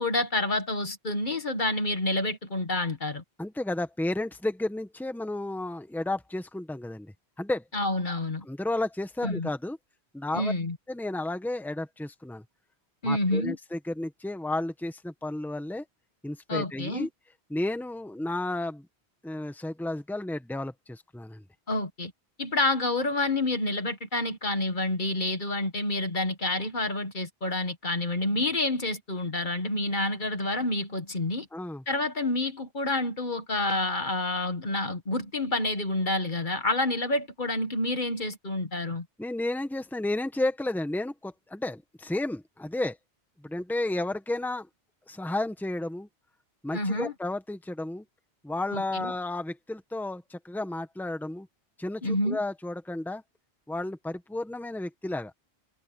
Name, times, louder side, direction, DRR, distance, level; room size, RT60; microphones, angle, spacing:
voice 1, 0.0-3.2 7.7-8.4 9.2-9.5 10.3-10.8 13.0-13.6 16.5-17.1 21.7-22.1 22.4-31.5 31.9-39.0 46.7-47.1 48.7-49.1 52.0-52.4, left 2 dB, 50° left, 1.6 m, -28 dB
voice 2, 3.4-7.6 8.4-9.8 10.1-10.5 10.9-12.4 13.0-15.8 16.2-17.1 17.5-18.9 19.2-21.4 31.5-31.8 39.2-43.0 43.4-44.7 45.1-46.1 46.6-48.0 48.4-51.5 51.8-53.2 53.7-55.3, left 2 dB, ahead, 1.4 m, -32 dB
omnidirectional pair, 1.1 m